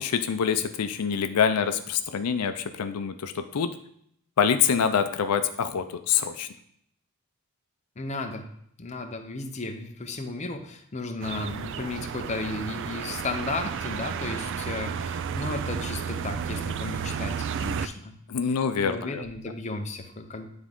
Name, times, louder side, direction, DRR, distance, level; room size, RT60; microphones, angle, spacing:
voice 1, 0.0-3.7 4.4-6.5 18.3-19.2, left 7 dB, 90° left, 9 dB, 0.5 m, -25 dB
voice 2, 8.0-8.5 8.8-18.1 18.8-20.5, left 3 dB, 30° left, 4 dB, 0.6 m, -34 dB
sound 1, 11.2-17.9, right 7 dB, 55° right, 0.3 m, -32 dB
9.6 x 3.6 x 3.7 m, 0.70 s
head